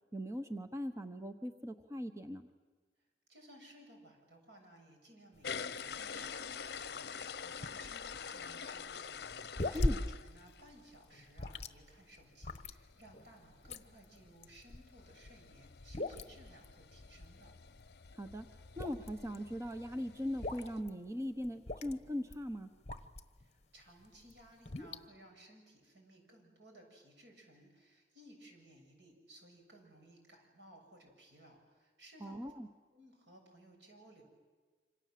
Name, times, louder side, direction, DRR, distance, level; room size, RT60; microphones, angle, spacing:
voice 1, 0.1-2.5 9.7-10.0 18.1-18.5 18.8-22.7 32.2-32.7, equal, 15° right, 8 dB, 1.0 m, -40 dB
voice 2, 3.3-17.5 23.4-32.4 32.9-34.2, right 1 dB, 90° right, 2 dB, 7.2 m, -59 dB
sound 1, 5.3-23.5 23.9-25.1, left 1 dB, 40° left, 1.2 m, -41 dB
sound 2, 5.4-10.9 11.3-11.6 11.9-12.0 12.2-12.3 12.5-20.8, left 6 dB, 65° left, 0.8 m, -47 dB
27.5 x 26.0 x 7.7 m, 1.4 s
head